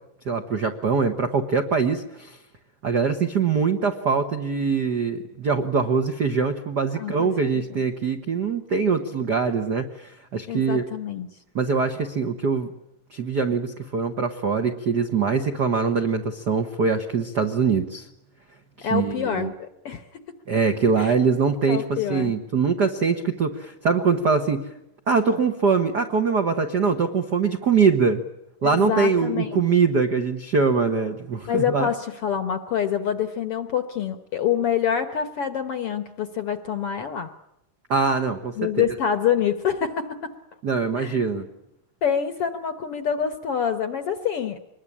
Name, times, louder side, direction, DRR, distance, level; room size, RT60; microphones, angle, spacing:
voice 1, 0.2-2.4 2.8-10.8 11.5-12.7 13.1-18.1 18.8-19.5 20.5-24.7 25.1-28.2 28.6-31.9 37.9-38.8 40.6-41.4, right 5 dB, 60° right, 5 dB, 1.0 m, -23 dB
voice 2, 7.0-7.8 10.5-11.3 18.8-20.0 21.0-21.1 21.7-22.3 28.6-29.6 31.4-37.3 38.6-40.3 41.0-41.2 42.0-44.6, left 8 dB, 60° left, 9 dB, 1.6 m, -26 dB
24.5 x 21.5 x 10.0 m, 0.82 s
omnidirectional pair, 3.9 m